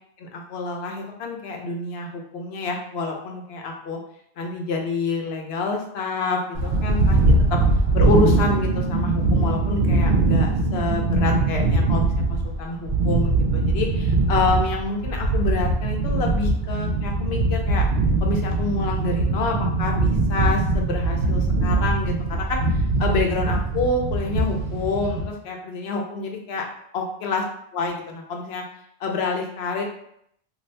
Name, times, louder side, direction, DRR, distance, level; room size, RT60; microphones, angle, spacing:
voice 1, 0.2-4.0 4.4-7.6 7.9-17.9 18.2-22.6 23.0-26.6 26.9-27.4 27.7-28.6 29.0-29.8, left 3 dB, 80° left, 2 dB, 0.9 m, -27 dB
sound 1, 6.5-25.2, right 2 dB, 75° right, 0.8 m, -21 dB
2.6 x 2.5 x 3.2 m, 0.71 s
omnidirectional pair, 1.0 m